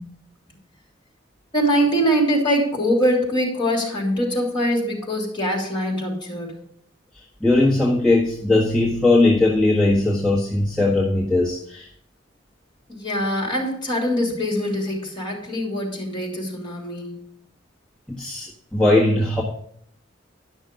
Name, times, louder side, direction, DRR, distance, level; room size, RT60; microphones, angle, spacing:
voice 1, 1.5-6.6 12.9-17.3, equal, 25° left, 0 dB, 3.0 m, -23 dB
voice 2, 7.4-11.9 18.1-19.4, left 2 dB, 5° left, -7 dB, 1.5 m, -19 dB
11.0 x 6.2 x 5.2 m, 0.66 s
head